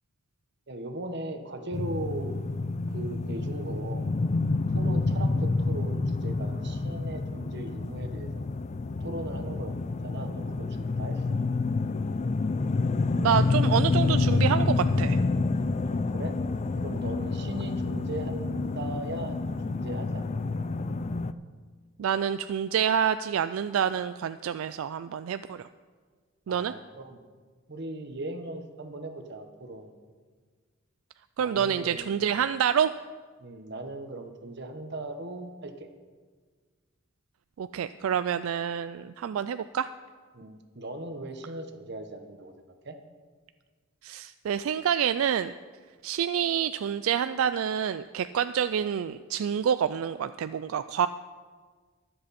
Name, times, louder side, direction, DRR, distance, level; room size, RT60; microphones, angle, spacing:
voice 1, 0.7-2.4 2.9-4.1 4.7-8.4 9.0-9.7 10.0-11.4 15.8-16.4 16.8-20.2 20.6-20.7 26.5-27.2 27.7-29.9 31.4-32.2 33.4-35.9 40.3-42.5 42.8-43.0, right 1 dB, 55° right, 6 dB, 1.2 m, -38 dB
sound 1, 1.7-21.3, left 3 dB, 35° left, 0.4 m, -28 dB
voice 2, 13.2-15.2 22.0-25.7 26.5-26.7 31.4-32.9 37.6-39.9 44.0-45.5 46.0-51.1, right 8 dB, 80° right, 12 dB, 0.3 m, -27 dB
22.5 x 7.8 x 4.3 m, 1.5 s
head